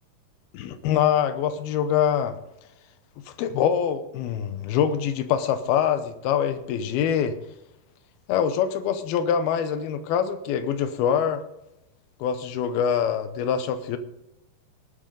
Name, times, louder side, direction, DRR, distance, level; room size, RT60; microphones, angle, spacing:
voice 1, 0.5-2.4 3.4-7.3 8.3-11.4 12.2-14.0, left 8 dB, 80° left, 10 dB, 2.7 m, -24 dB
19.0 x 9.1 x 3.9 m, 0.91 s
omnidirectional pair, 4.4 m